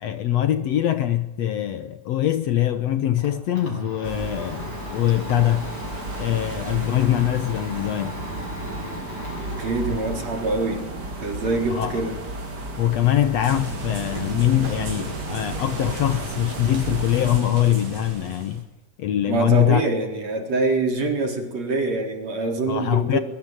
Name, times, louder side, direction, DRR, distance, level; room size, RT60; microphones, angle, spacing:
voice 1, 0.0-5.7 6.2-8.1 11.7-12.0 12.8-18.6 19.0-19.8 22.7-23.2, left 12 dB, 65° left, 2.0 m, -23 dB
Domestic sounds home sounds, 2.7-18.6, equal, 35° left, 8.1 m, -40 dB
sound 1, 4.0-17.4, right 2 dB, 30° right, 3.9 m, -34 dB
voice 2, 9.3-10.9 11.2-12.2 19.3-23.2, right 3 dB, 55° right, 5.1 m, -25 dB
sound 2, 13.4-18.6, right 2 dB, 85° right, 6.3 m, -34 dB
23.5 x 22.5 x 9.2 m
omnidirectional pair, 3.6 m